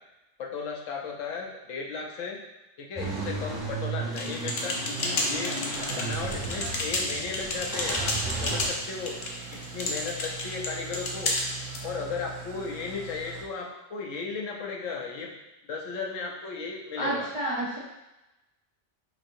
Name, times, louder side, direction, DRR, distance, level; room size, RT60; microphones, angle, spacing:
voice 1, 0.4-2.4 2.8-5.6 5.9-9.2 9.5-11.4 11.8-15.3 15.7-17.3, left 5 dB, 90° left, 0 dB, 1.0 m, -35 dB
Car / Engine starting / Idling, 3.0-8.7, right 3 dB, 15° right, 0.8 m, -34 dB
sound 1, 4.1-11.8, left 2 dB, 65° left, 0.8 m, -32 dB
Engine starting / Idling, 5.0-13.4, right 4 dB, 80° right, 0.9 m, -42 dB
voice 2, 17.0-17.8, right 1 dB, 45° right, -6 dB, 0.4 m, -30 dB
5.1 x 2.7 x 2.6 m, 0.97 s
omnidirectional pair, 1.2 m